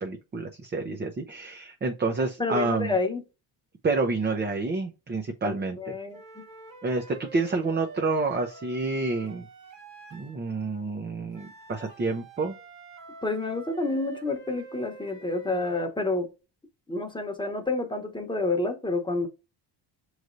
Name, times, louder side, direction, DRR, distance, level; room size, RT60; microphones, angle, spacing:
voice 1, 0.0-3.0 3.8-5.9 6.8-9.5 10.1-12.5, right 3 dB, 20° right, 0.6 m, -29 dB
voice 2, 2.4-3.2 5.4-6.4 13.2-16.3 16.9-19.3, left 3 dB, 10° left, 1.0 m, -29 dB
sound 1, 6.1-10.4 11.3-16.0, right 4 dB, 65° right, 1.6 m, -46 dB
6.2 x 3.2 x 2.6 m
cardioid pair, 85°, 47 cm